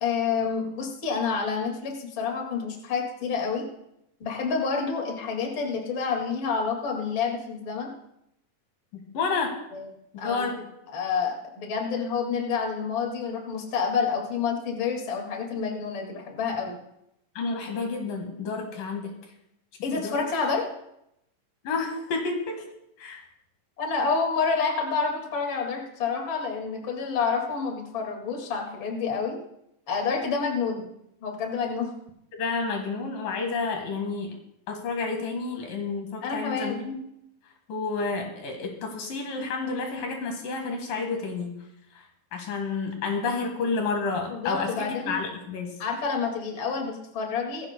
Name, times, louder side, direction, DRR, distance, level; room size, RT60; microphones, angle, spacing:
voice 1, 0.0-3.7 4.2-7.9 9.7-9.9 10.2-10.5 10.9-16.8 19.8-20.6 23.8-29.4 29.9-30.9 31.2-31.9 36.2-36.8 44.3-45.1 45.8-47.7, left 5 dB, 40° left, 1 dB, 2.5 m, -28 dB
voice 2, 8.9-9.6 10.2-10.6 17.4-19.2 19.9-20.2 21.6-22.6 23.0-23.2 32.3-34.4 34.7-37.0 37.7-41.6 42.3-45.8, left 4 dB, 80° left, 3 dB, 3.4 m, -30 dB
19.0 x 15.5 x 2.2 m, 0.81 s
omnidirectional pair, 3.9 m